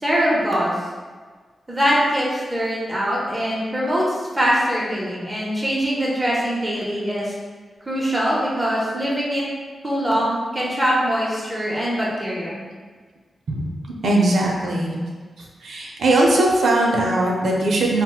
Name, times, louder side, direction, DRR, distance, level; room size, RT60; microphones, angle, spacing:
voice 1, 0.0-0.7 1.7-7.3 7.9-9.4 9.8-12.6, equal, 10° right, -5 dB, 0.6 m, -22 dB
voice 2, 14.0-15.0 15.6-18.0, right 1 dB, 85° right, -2 dB, 0.5 m, -19 dB
4.1 x 2.0 x 2.2 m, 1.5 s
wide cardioid pair, 170°, 0 cm